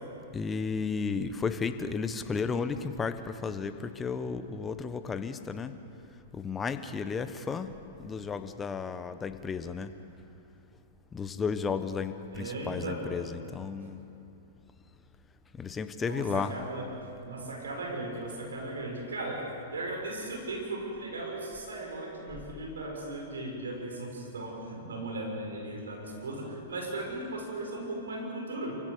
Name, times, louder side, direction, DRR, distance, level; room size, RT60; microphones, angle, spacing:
voice 1, 0.3-5.7 6.3-7.7 8.0-9.9 11.1-14.0 15.6-16.5, left 5 dB, 15° left, 10 dB, 1.2 m, -33 dB
voice 2, 12.3-13.1 16.0-16.9 17.2-19.4 19.7-28.8, right 2 dB, 85° right, 0 dB, 6.7 m, -37 dB
27.5 x 16.5 x 6.9 m, 2.8 s
hypercardioid pair, 120°, 0 cm